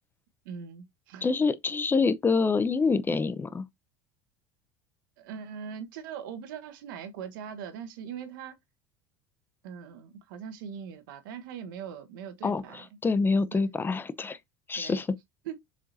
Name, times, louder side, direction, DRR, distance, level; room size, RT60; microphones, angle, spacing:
voice 1, 0.4-1.3 5.2-8.6 9.6-12.9 14.7-15.0 15.4-15.6, right 7 dB, 80° right, 1.3 m, -41 dB
voice 2, 1.2-3.6 12.4-14.4 14.7-15.1, left 4 dB, 20° left, 0.7 m, -26 dB
7.1 x 4.9 x 2.7 m
supercardioid pair, 105°, 11 cm